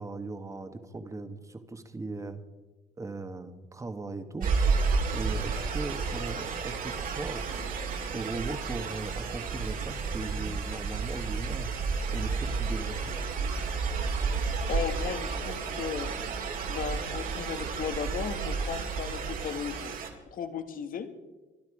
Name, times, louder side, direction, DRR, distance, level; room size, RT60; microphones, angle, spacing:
voice 1, 0.0-2.4 3.0-4.5 5.1-7.6 8.1-11.7 12.1-13.2, right 3 dB, 20° right, 8 dB, 1.5 m, -38 dB
sound 1, 4.4-20.1, right 4 dB, 55° right, 2.6 m, -31 dB
voice 2, 14.7-16.2 16.7-20.0 20.3-21.1, left 7 dB, 55° left, 9 dB, 1.7 m, -35 dB
24.0 x 12.0 x 5.0 m, 1.2 s
cardioid pair, 110°, 17 cm